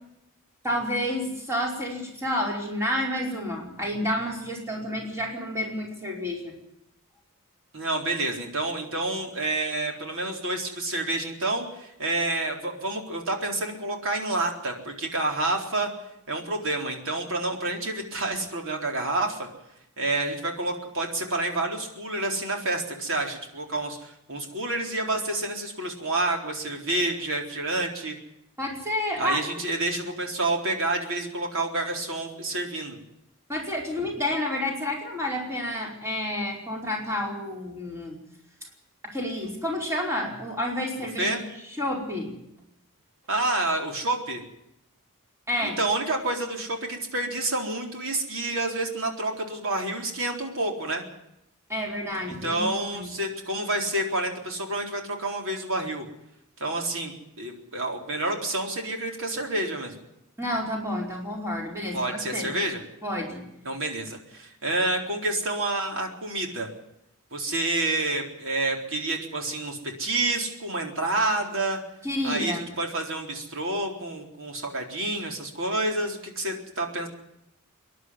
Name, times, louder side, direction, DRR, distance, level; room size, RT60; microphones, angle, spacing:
voice 1, 0.6-6.5 28.6-29.4 33.5-38.2 39.0-41.4 41.8-42.3 45.5-45.8 51.7-53.2 60.4-62.6 63.0-63.4 72.0-72.7, left 1 dB, 15° right, -1 dB, 4.9 m, -30 dB
voice 2, 7.7-15.9 16.3-19.5 20.0-28.2 29.2-33.0 41.2-41.4 43.3-44.4 45.6-51.0 52.3-56.1 56.6-59.9 61.9-62.8 63.6-66.7 67.3-71.8 72.2-77.1, right 2 dB, 65° right, 2 dB, 4.0 m, -29 dB
25.0 x 11.0 x 9.6 m, 0.82 s
head